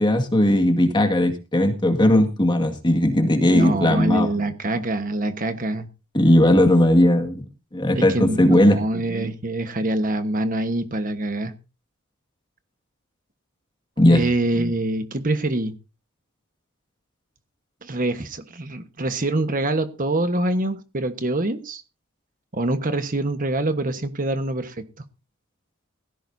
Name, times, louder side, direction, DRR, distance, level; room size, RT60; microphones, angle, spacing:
voice 1, 0.0-4.3 6.1-7.4 7.7-8.8 14.0-14.2, left 1 dB, 20° left, 5 dB, 1.9 m, -17 dB
voice 2, 3.5-5.9 7.9-11.5 14.1-15.7 17.8-21.8 22.5-25.0, right 2 dB, 40° right, 8 dB, 1.3 m, -25 dB
18.0 x 15.0 x 2.7 m, 0.31 s
head